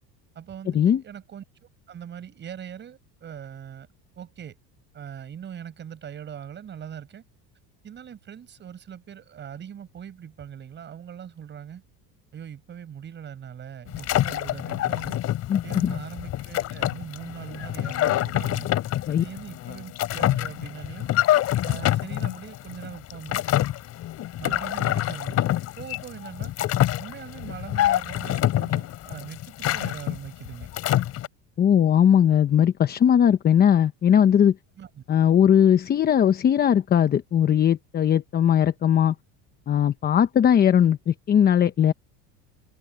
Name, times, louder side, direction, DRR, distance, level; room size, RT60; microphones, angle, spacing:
voice 1, 0.3-3.9 4.1-4.6 4.9-7.2 7.8-11.8 12.3-15.2 15.6-18.7 19.2-21.1 21.6-23.4 24.4-26.5 27.0-30.7 34.8-35.0, right 8 dB, 30° right, 6.5 m, -41 dB
sound 1, 13.9-31.3, left 13 dB, 45° left, 3.2 m, -26 dB
voice 2, 15.5-15.9 19.1-19.2 31.6-34.5 35.1-39.1 39.7-41.9, left 9 dB, 25° left, 1.0 m, -19 dB
cardioid pair, 145°, 35 cm